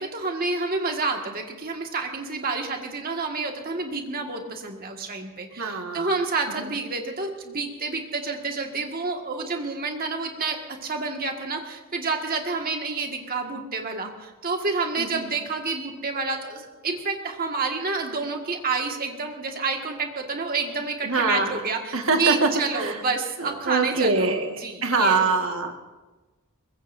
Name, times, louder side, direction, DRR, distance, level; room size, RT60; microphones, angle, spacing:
voice 1, 0.0-25.3, right 4 dB, 40° right, 2 dB, 1.9 m, -29 dB
voice 2, 5.6-6.1 6.6-6.7 15.0-15.3 21.0-21.6 21.9-23.0 23.4-25.8, right 3 dB, 60° right, 3 dB, 1.8 m, -24 dB
23.0 x 20.5 x 2.7 m, 1.2 s
head